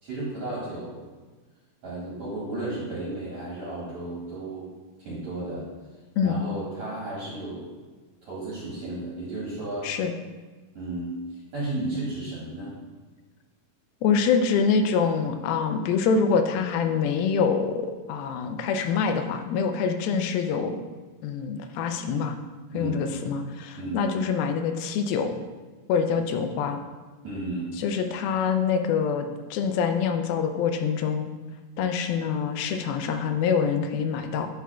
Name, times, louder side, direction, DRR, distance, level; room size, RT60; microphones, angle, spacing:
voice 1, 0.0-1.0 1.8-4.7 5.0-5.7 6.2-7.7 8.2-9.9 10.7-11.1 11.5-12.7 22.7-23.0 23.8-24.1 27.2-27.7, right 2 dB, 55° right, -9 dB, 2.7 m, -33 dB
voice 2, 14.0-20.8 21.2-22.4 22.7-25.4 25.9-26.8 27.8-31.3 31.8-34.5, left 6 dB, 85° left, 6 dB, 2.4 m, -25 dB
9.2 x 6.0 x 2.3 m, 1.3 s
omnidirectional pair, 4.2 m